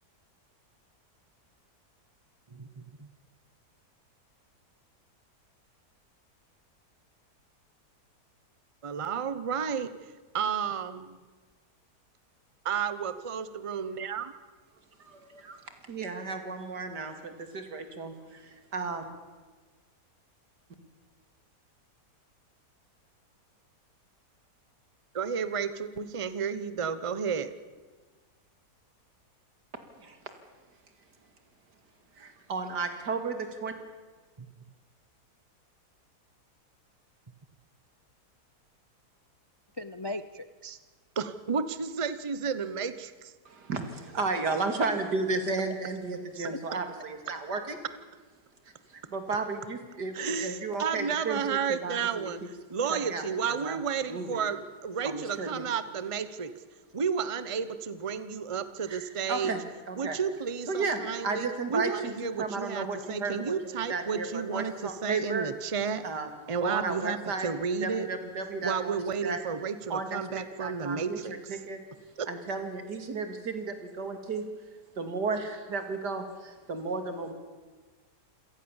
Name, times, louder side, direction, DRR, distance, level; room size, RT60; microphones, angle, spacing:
voice 1, 2.5-3.1 8.8-9.9 10.3-11.2 12.6-14.3 25.1-27.5 34.4-34.5 41.2-43.3 50.1-52.4 52.7-56.5 56.9-59.5 60.0-66.1 66.5-67.2 67.4-68.1 68.6-71.3 72.2-72.3, right 6 dB, 25° right, 13 dB, 0.8 m, -32 dB
voice 2, 15.0-15.6 15.9-19.0 30.0-30.2 32.2-33.7 43.5-47.8 48.9-51.4 51.7-52.3 52.9-53.8 54.1-54.4 55.0-55.7 58.9-59.6 59.9-60.2 60.7-65.5 66.0-66.3 66.6-67.5 67.8-69.0 69.2-69.4 69.9-71.8 72.3-74.4 75.0-77.3, right 3 dB, 80° right, 7 dB, 3.0 m, -34 dB
voice 3, 39.8-40.8 46.4-46.6, left 1 dB, 40° left, 12 dB, 0.3 m, -38 dB
27.5 x 18.0 x 7.3 m, 1.4 s
omnidirectional pair, 1.8 m